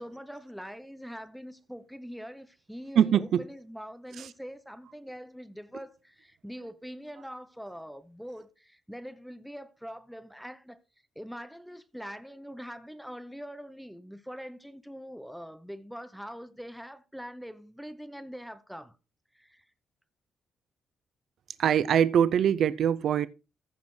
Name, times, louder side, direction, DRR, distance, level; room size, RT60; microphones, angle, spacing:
voice 1, 0.0-10.8 11.2-19.0 19.3-19.6, equal, ahead, 0.6 m, -43 dB
voice 2, 3.0-3.4 21.6-23.3, right 9 dB, 60° right, 0.4 m, -23 dB
15.0 x 6.4 x 3.2 m
cardioid pair, 135°, 0 cm